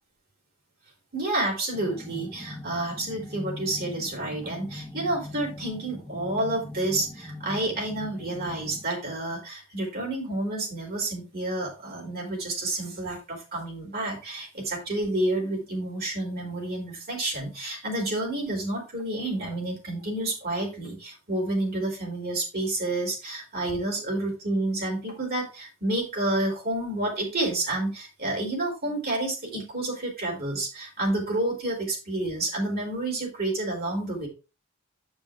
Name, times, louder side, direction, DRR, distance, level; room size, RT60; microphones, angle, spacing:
voice 1, 1.1-34.3, right 2 dB, 45° right, 0 dB, 3.4 m, -29 dB
sound 1, 1.7-8.8, left 2 dB, ahead, 1.1 m, -41 dB
8.8 x 5.4 x 3.6 m, 0.31 s
head